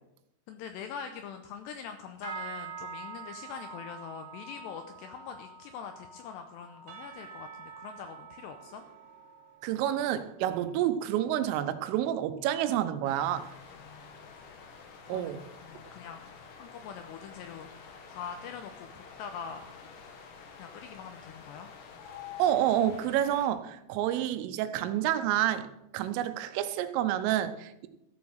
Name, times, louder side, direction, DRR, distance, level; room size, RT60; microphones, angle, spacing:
voice 1, 0.5-8.8 13.7-14.2 15.1-16.3 16.6-19.7 20.6-21.7, left 7 dB, 85° left, 2.5 m, -43 dB
sound 1, 2.2-11.8 12.1-12.5 12.9-13.2 13.8-13.9, right 4 dB, 25° left, 2.5 m, -47 dB
Percussion / Church bell, 6.9-11.0, right 8 dB, 70° right, 2.8 m, -51 dB
voice 2, 9.6-13.6 15.1-15.4 22.4-27.9, right 11 dB, 85° right, 3.4 m, -29 dB
sound 2, 13.0-23.5, left 6 dB, 70° left, 2.1 m, -49 dB
14.0 x 7.2 x 6.4 m
omnidirectional pair, 5.7 m